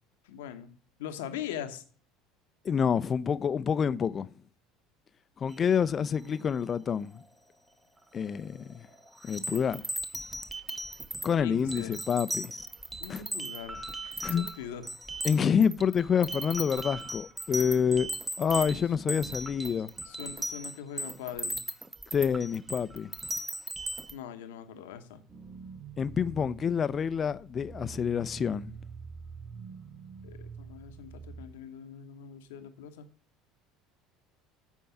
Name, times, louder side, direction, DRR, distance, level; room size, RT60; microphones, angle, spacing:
voice 1, 0.2-0.7 1.0-1.8 11.4-11.9 13.0-14.9 20.0-21.6 24.1-25.2 30.2-33.1, left 9 dB, 75° left, 1.0 m, -41 dB
voice 2, 2.6-4.3 5.4-7.2 8.1-8.9 9.2-9.8 11.2-12.5 13.1-13.2 14.2-14.5 15.2-18.1 18.4-19.9 22.1-23.1 26.0-28.7, left 7 dB, 35° left, 0.5 m, -27 dB
sound 1, 5.5-6.1 8.2-8.5 8.7-24.1, right 1 dB, 15° right, 0.9 m, -38 dB
sound 2, 25.3-31.5, right 5 dB, 30° right, 1.9 m, -46 dB
8.5 x 4.6 x 5.8 m
hypercardioid pair, 75°, 0 cm